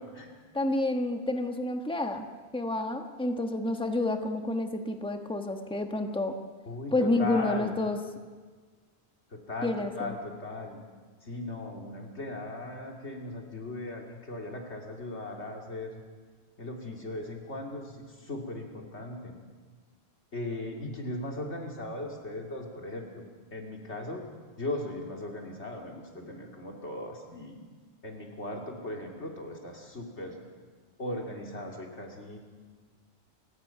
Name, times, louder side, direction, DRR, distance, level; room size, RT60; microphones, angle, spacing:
voice 1, 0.5-2.3 2.5-6.3 6.9-8.0 9.6-10.1, left 2 dB, 5° left, 5 dB, 1.3 m, -29 dB
voice 2, 6.7-7.8 9.3-10.8 11.2-16.0 16.6-19.4 20.3-23.2 23.5-24.3 24.6-27.6 28.0-30.4 31.0-32.4, left 2 dB, 90° left, 1 dB, 3.2 m, -38 dB
30.0 x 16.5 x 5.9 m, 1.5 s
omnidirectional pair, 1.1 m